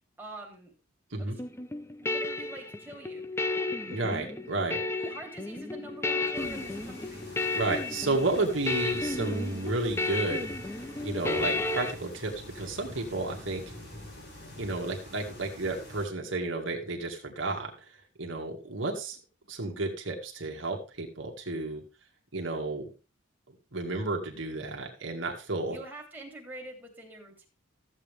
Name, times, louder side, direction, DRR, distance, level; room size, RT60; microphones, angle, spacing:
voice 1, 0.2-0.7 1.2-1.3 2.0-3.2 5.0-7.2 25.7-27.5, right 2 dB, 10° right, -1 dB, 3.3 m, -45 dB
sound 1, 1.4-11.9, left 3 dB, 15° left, 0.6 m, -33 dB
voice 2, 3.9-4.8 7.5-10.5 11.0-13.6 14.6-17.9 18.2-19.2 19.5-21.8 22.3-22.9 23.5-25.8, right 2 dB, 65° right, 1 dB, 2.2 m, -32 dB
sound 2, 6.3-16.1, left 1 dB, 55° left, 4.2 m, -46 dB
14.5 x 8.0 x 3.5 m, 0.34 s
head